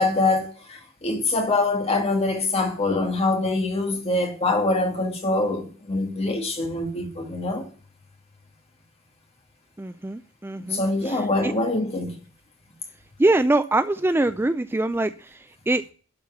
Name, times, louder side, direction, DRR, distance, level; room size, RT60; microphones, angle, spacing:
voice 1, 0.0-7.7 10.6-12.2, left 2 dB, 30° left, 2.0 m, -24 dB
voice 2, 9.8-11.5 13.2-15.9, right 2 dB, 10° right, 0.4 m, -24 dB
12.0 x 4.4 x 7.0 m
head